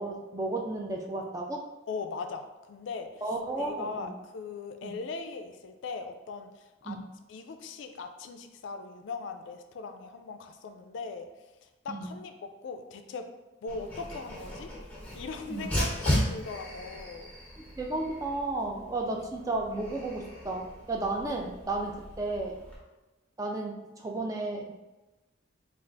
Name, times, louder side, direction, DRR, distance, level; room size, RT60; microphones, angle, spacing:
voice 1, 0.0-1.7 3.2-4.1 4.8-4.9 6.9-7.0 11.9-12.1 15.5-15.7 17.8-22.6 23.4-24.7, right 2 dB, 15° right, 1 dB, 0.3 m, -33 dB
voice 2, 1.9-3.1 3.6-7.0 7.3-11.3 11.6-13.3 13.6-14.7 15.1-17.3, left 4 dB, 70° left, 7 dB, 0.3 m, -39 dB
Dog, 13.7-22.8, equal, 10° left, 0.7 m, -36 dB
3.3 x 2.4 x 3.8 m, 1.1 s
head